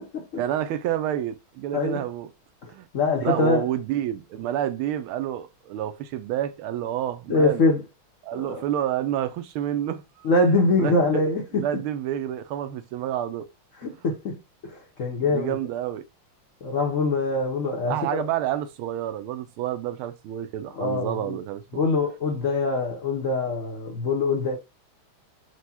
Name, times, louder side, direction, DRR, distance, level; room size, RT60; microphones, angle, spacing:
voice 1, 0.4-2.3 2.7-2.9 3.2-7.7 8.2-10.3 10.8-11.2 11.5-13.5 15.2-16.0 17.9-21.8, right 11 dB, 85° right, 1.5 m, -29 dB
voice 2, 1.7-2.0 2.6-3.7 7.3-7.8 8.3-8.6 10.2-11.6 13.8-15.6 16.6-18.2 20.8-21.4 21.7-24.6, left 3 dB, 55° left, 0.9 m, -24 dB
4.7 x 2.2 x 4.1 m
omnidirectional pair, 2.3 m